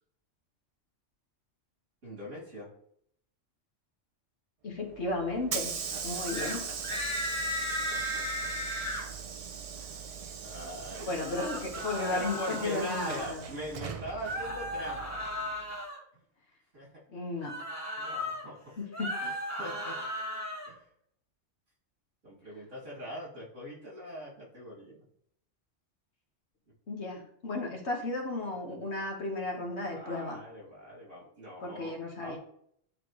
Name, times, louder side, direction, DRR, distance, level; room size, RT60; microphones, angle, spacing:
voice 1, 2.0-2.7 5.9-7.0 7.9-8.5 9.7-11.6 12.1-15.2 16.1-16.2 16.7-16.9 18.0-18.7 19.2-20.0 20.6-20.8 22.2-25.0 29.9-32.4, equal, 80° right, -6 dB, 3.2 m, -42 dB
voice 2, 4.6-5.7 6.0-6.6 11.0-13.5 17.1-17.5 18.8-19.1 26.9-30.4 31.6-32.4, left 2 dB, 65° left, 1 dB, 1.6 m, -34 dB
Hiss / Sliding door, 4.8-15.7, right 6 dB, 55° right, 0.4 m, -40 dB
sound 1, 6.3-6.6 6.8-9.0 11.1-13.3 14.2-16.0 17.4-18.4 18.8-20.7, equal, 15° left, 1.1 m, -35 dB
9.6 x 3.3 x 3.1 m, 0.67 s
omnidirectional pair, 1.3 m